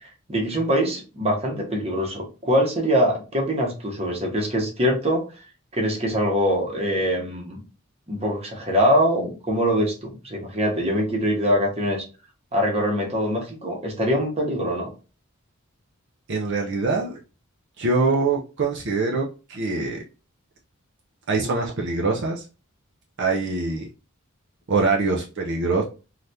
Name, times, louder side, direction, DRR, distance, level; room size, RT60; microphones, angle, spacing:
voice 1, 0.0-5.2 5.7-7.6 8.1-12.0 12.5-14.9, equal, 30° right, 0 dB, 0.9 m, -23 dB
voice 2, 16.3-17.2 17.8-20.0 21.3-22.4 23.2-23.9 24.7-25.8, right 3 dB, 60° right, -1 dB, 0.5 m, -24 dB
3.3 x 2.4 x 2.6 m, 0.33 s
head